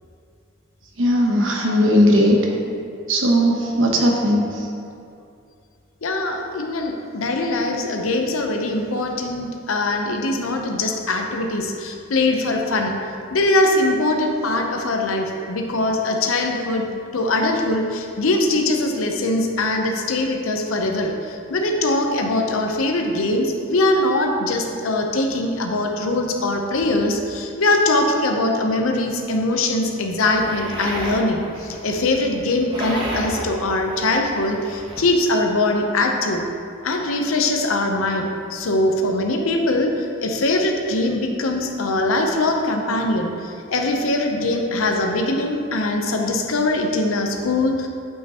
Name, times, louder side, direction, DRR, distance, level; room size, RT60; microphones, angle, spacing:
voice 1, 1.0-2.4 3.1-4.4, equal, 70° right, 0 dB, 1.0 m, -17 dB
voice 2, 6.0-13.0 13.3-16.9 17.1-21.1 21.5-36.4 36.8-39.9 40.2-43.3 43.7-47.9, left 2 dB, 85° left, 3 dB, 0.7 m, -22 dB
sound 1, 30.3-35.1, right 1 dB, 25° right, 1.0 m, -32 dB
8.7 x 5.5 x 2.9 m, 2.5 s
head